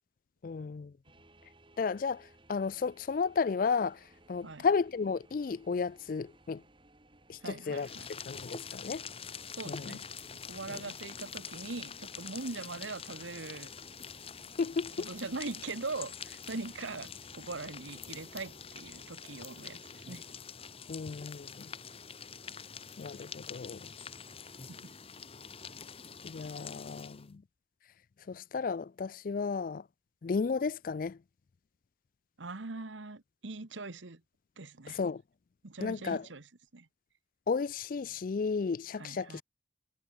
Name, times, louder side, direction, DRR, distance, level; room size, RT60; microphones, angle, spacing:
voice 1, 0.4-0.9 1.8-4.0 4.3-6.6 7.3-7.9 8.3-9.0 9.7-10.0 10.7-10.8 14.6-15.1 20.9-21.7 23.0-23.8 26.2-27.4 28.3-29.8 30.2-31.2 34.9-35.2 35.8-36.3 37.5-39.4, left 5 dB, 45° left, 0.4 m, -33 dB
sound 1, 1.0-19.1, right 1 dB, 25° right, 3.6 m, -62 dB
voice 2, 7.4-8.1 9.6-10.1 10.4-13.7 15.0-20.3 24.7-24.9 32.4-34.2 34.6-35.0 35.6-36.9 39.0-39.4, right 3 dB, 85° right, 1.3 m, -41 dB
sound 2, 7.7-27.3, left 6 dB, 30° left, 1.6 m, -46 dB
head